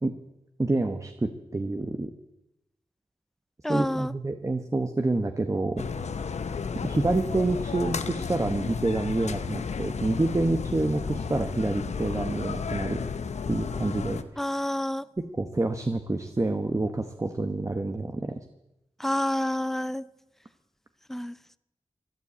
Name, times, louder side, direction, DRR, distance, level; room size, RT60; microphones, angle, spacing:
voice 1, 0.6-2.1 3.7-5.9 6.8-13.0 13.5-14.2 15.4-18.3, right 2 dB, 25° right, 1.0 m, -27 dB
voice 2, 3.6-4.1 14.4-15.1 19.0-20.1 21.1-21.4, left 1 dB, 5° left, 0.6 m, -28 dB
sound 1, 5.8-14.2, left 5 dB, 90° left, 0.9 m, -33 dB
14.5 x 11.5 x 8.5 m
wide cardioid pair, 85°, 11 cm